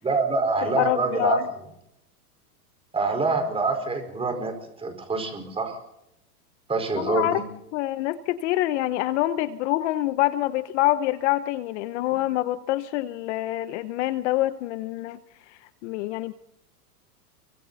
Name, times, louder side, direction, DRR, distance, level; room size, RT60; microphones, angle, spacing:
voice 1, 0.0-1.4 2.9-5.8 6.7-7.4, right 3 dB, 10° right, 5 dB, 4.8 m, -26 dB
voice 2, 0.7-1.4 7.0-7.4 7.7-15.2 15.5-16.3, left 15 dB, 45° left, 13 dB, 1.0 m, -26 dB
29.0 x 24.0 x 4.2 m, 0.80 s
supercardioid pair, 145°, 47 cm